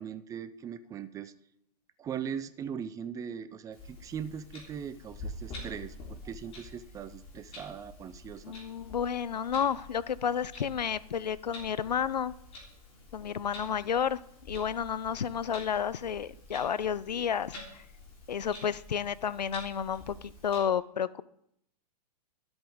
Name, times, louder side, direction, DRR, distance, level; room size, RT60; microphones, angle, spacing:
voice 1, 0.0-1.3 2.0-8.5, right 8 dB, 15° right, 13 dB, 0.5 m, -40 dB
Clock, 3.7-20.6, left 2 dB, 30° left, 3.4 m, -48 dB
voice 2, 8.4-12.4 13.1-14.2 14.5-17.8 18.3-21.2, left 8 dB, 80° left, 19 dB, 0.5 m, -31 dB
12.5 x 7.8 x 3.6 m, 0.76 s
figure-of-eight pair, 110°, 21 cm